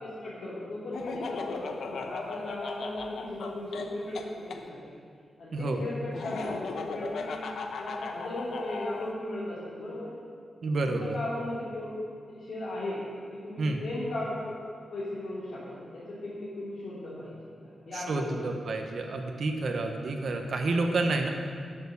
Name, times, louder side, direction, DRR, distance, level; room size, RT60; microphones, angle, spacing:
voice 1, 0.0-5.0 5.4-10.1 10.8-12.0 12.3-13.0 13.3-14.5 14.9-18.4, left 1 dB, 60° left, -11 dB, 2.9 m, -37 dB
Laughter, 0.9-4.6 6.1-9.1, left 4 dB, 75° left, 0.9 m, -37 dB
voice 2, 5.5-5.8 10.6-11.2 13.6-13.8 17.9-21.3, right 2 dB, 55° right, 3 dB, 0.9 m, -29 dB
11.0 x 7.0 x 6.9 m, 2.2 s
wide cardioid pair, 155°, 0 cm